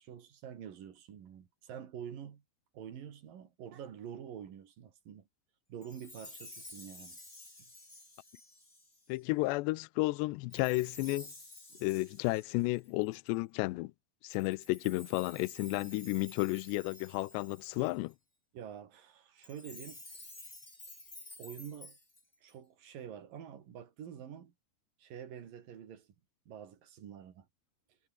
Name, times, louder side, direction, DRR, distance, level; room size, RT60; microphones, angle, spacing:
voice 1, 0.0-2.4 2.7-5.3 5.7-7.2 11.7-11.8 18.5-20.0 21.4-22.0 22.4-24.5 25.0-26.1 26.5-27.5, right 8 dB, 50° right, 3.7 m, -47 dB
Chime, 5.8-9.2 10.5-13.4 14.3-18.1 19.4-22.5, left 2 dB, 15° left, 7.3 m, -52 dB
voice 2, 9.1-11.3 11.8-13.9 14.2-18.1, left 22 dB, 85° left, 2.5 m, -32 dB
omnidirectional pair, 5.5 m